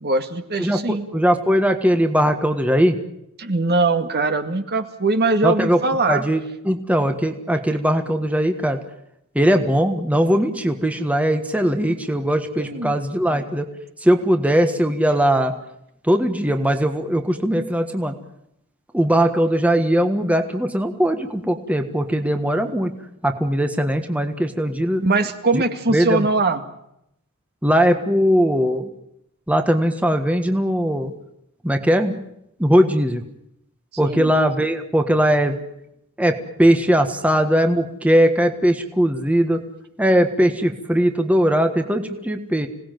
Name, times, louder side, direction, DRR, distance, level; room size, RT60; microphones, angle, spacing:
voice 1, 0.0-1.1 3.4-6.2 12.6-12.9 25.0-26.6 34.0-34.3, right 3 dB, 50° right, 7 dB, 2.1 m, -21 dB
voice 2, 0.6-3.0 5.4-5.8 6.1-8.8 9.3-13.7 14.0-15.6 16.0-18.2 18.9-22.9 23.2-25.0 25.9-26.3 27.6-28.9 29.5-31.1 31.6-32.1 32.6-33.2 34.0-35.6 36.2-39.6 40.0-42.7, equal, 5° right, 6 dB, 1.5 m, -19 dB
26.5 x 18.5 x 9.3 m, 0.80 s
head